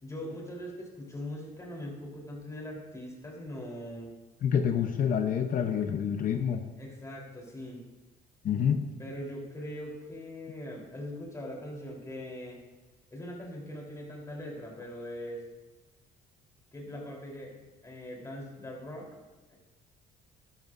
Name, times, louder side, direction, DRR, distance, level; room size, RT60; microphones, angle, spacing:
voice 1, 0.0-4.1 6.8-7.8 9.0-12.6 13.1-15.4 16.7-19.2 19.5-19.6, left 1 dB, 20° left, -2 dB, 3.8 m, -41 dB
voice 2, 4.4-6.6 8.4-8.9, left 8 dB, 55° left, 7 dB, 0.8 m, -27 dB
12.5 x 12.0 x 2.7 m, 1.2 s
cardioid pair, 110°, 17 cm